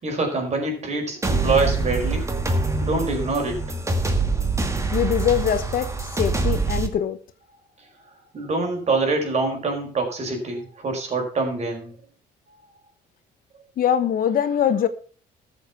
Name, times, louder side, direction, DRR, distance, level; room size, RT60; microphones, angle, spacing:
voice 1, 0.0-2.3 2.8-3.6 8.3-11.9, right 3 dB, 40° right, 5.1 m, -25 dB
sound 1, 1.2-6.9, right 3 dB, 15° right, 2.0 m, -24 dB
voice 2, 4.9-7.2 13.8-14.9, left 9 dB, 55° left, 1.2 m, -22 dB
13.5 x 7.3 x 5.7 m
cardioid pair, 110°, 17 cm